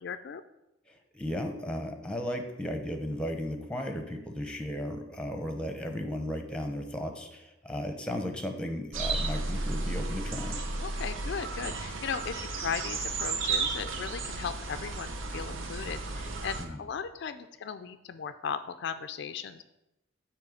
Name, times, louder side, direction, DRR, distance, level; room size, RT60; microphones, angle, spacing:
voice 1, 0.0-0.4 10.8-19.6, left 6 dB, 60° left, 10 dB, 0.3 m, -37 dB
voice 2, 0.9-10.6 16.6-16.8, left 1 dB, 5° left, 5 dB, 0.7 m, -35 dB
sound 1, 8.9-16.6, right 3 dB, 85° right, 0.8 m, -33 dB
8.9 x 3.1 x 6.3 m, 0.92 s
head